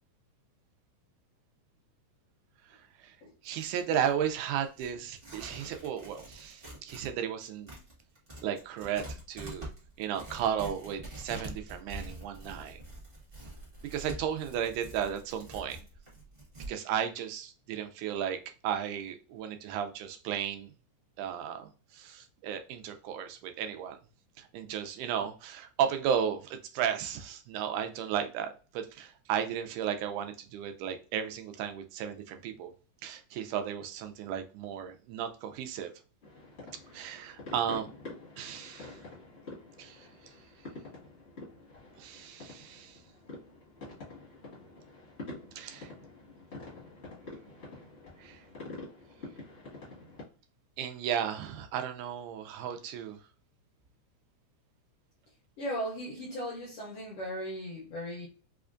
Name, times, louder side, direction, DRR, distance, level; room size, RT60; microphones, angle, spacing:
Tearing, 3.4-7.1 7.4-16.7, right 1 dB, 40° right, 0.8 m, -46 dB
voice 1, 3.4-7.7 8.4-9.7 10.0-12.8 13.8-15.8 16.7-18.4 18.6-20.7 21.2-24.0 24.4-32.7 33.0-35.9 36.9-37.9 38.4-39.0 39.8-40.1 42.0-43.0 45.6-45.9 48.2-48.4 50.8-53.2, right 9 dB, 85° right, 2.0 m, -34 dB
sound 1, 36.2-50.2, left 2 dB, 45° left, 0.8 m, -47 dB
voice 2, 55.6-58.3, equal, 75° left, 1.4 m, -37 dB
5.0 x 2.3 x 2.4 m
omnidirectional pair, 3.5 m